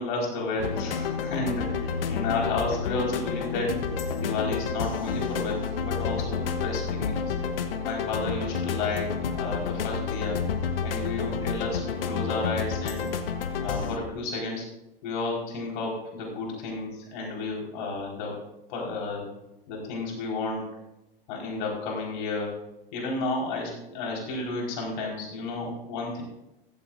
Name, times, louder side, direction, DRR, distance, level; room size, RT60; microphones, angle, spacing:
voice 1, 0.0-3.7 4.2-7.3 7.8-10.4 10.8-13.1 13.6-14.7 15.0-18.4 18.7-19.3 19.7-20.7 21.3-22.5 22.9-26.2, left 3 dB, 55° left, -1 dB, 4.7 m, -32 dB
sound 1, 0.6-14.0, left 5 dB, 70° left, 1.2 m, -30 dB
14.5 x 14.0 x 2.6 m, 0.90 s
figure-of-eight pair, 95°, 29 cm